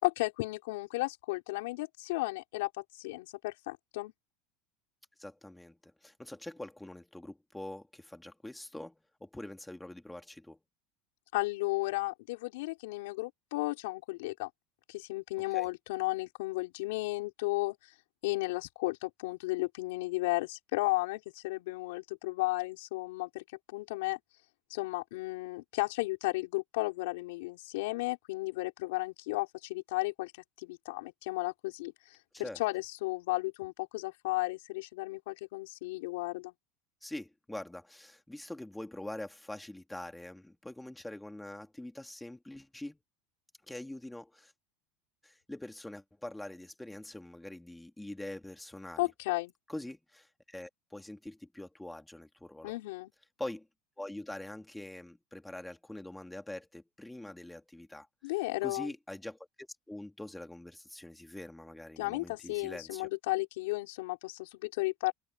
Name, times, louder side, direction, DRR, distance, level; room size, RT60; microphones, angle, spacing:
voice 1, 0.0-4.1 11.3-14.5 14.9-17.8 18.2-24.2 24.7-30.3 30.6-36.5 49.0-49.5 52.6-53.1 58.2-58.9 62.0-65.1, left 22 dB, 80° left, 5.5 m, -34 dB
voice 2, 5.2-10.6 15.4-15.7 32.3-32.6 37.0-43.0 43.7-44.5 45.2-49.1 49.7-52.8 53.4-53.7 54.0-58.1 58.6-63.1, left 1 dB, 5° left, 2.4 m, -44 dB
supercardioid pair, 135°, 0 cm